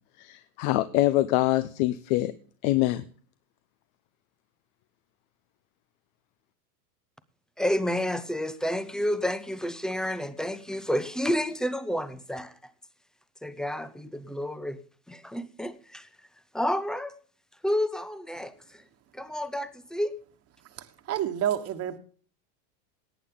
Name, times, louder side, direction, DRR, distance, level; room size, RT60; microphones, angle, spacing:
voice 1, 0.2-2.3 2.6-3.0, left 16 dB, 55° left, 13 dB, 1.0 m, -24 dB
voice 2, 7.6-12.5 13.4-14.8 15.1-16.0 16.5-17.1 17.6-18.5 19.2-20.1, equal, ahead, 14 dB, 0.5 m, -30 dB
voice 3, 20.6-22.0, right 10 dB, 30° right, 9 dB, 1.4 m, -30 dB
18.0 x 8.6 x 3.7 m, 0.43 s
supercardioid pair, 130°, 49 cm